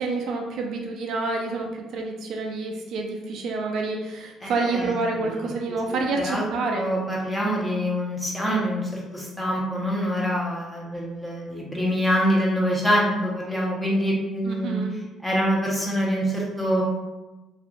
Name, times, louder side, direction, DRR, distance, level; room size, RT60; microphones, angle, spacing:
voice 1, 0.0-6.9 14.4-14.9, right 3 dB, 70° right, 1 dB, 0.4 m, -28 dB
voice 2, 4.4-5.4 5.7-6.4 6.7-14.8 15.2-16.8, equal, 10° left, -4 dB, 0.9 m, -25 dB
2.6 x 2.5 x 2.4 m, 1.1 s
supercardioid pair, 75°, 0 cm